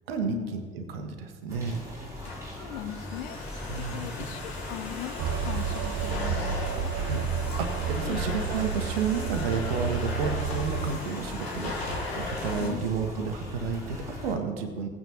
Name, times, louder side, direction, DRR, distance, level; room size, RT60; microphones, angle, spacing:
voice 1, 0.1-1.8 3.7-4.1 6.9-7.3 7.6-14.9, right 5 dB, 70° right, 6 dB, 1.2 m, -31 dB
sound 1, 1.5-14.4, left 1 dB, 10° right, 2.9 m, -40 dB
Domestic sounds home sounds, 2.0-12.7, left 2 dB, 75° left, 1.7 m, -38 dB
voice 2, 2.6-3.4 3.8-6.9 8.0-8.2 12.6-12.9 13.2-13.4, left 13 dB, 55° left, 11 dB, 0.6 m, -39 dB
sound 2, 5.2-10.9, right 7 dB, 45° right, 0.5 m, -31 dB
17.0 x 9.0 x 2.9 m, 1.5 s
figure-of-eight pair, 65°, 31 cm